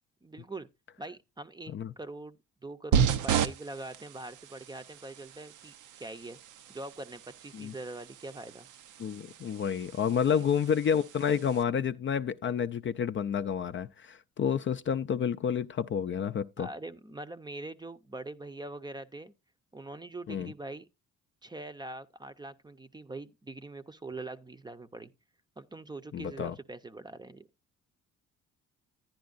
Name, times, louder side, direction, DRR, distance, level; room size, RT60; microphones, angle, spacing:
voice 1, 0.2-0.7 1.0-2.4 2.6-6.4 6.7-8.7 10.2-10.4 16.6-19.3 19.7-20.9 21.4-25.1 25.6-27.5, right 2 dB, 15° right, 0.6 m, -43 dB
sound 1, 2.9-11.6, right 8 dB, 80° right, 0.6 m, -34 dB
voice 2, 9.0-16.7 20.3-20.5 26.1-26.5, left 7 dB, 40° left, 0.4 m, -30 dB
10.5 x 10.5 x 2.5 m
cardioid pair, 90°, 30 cm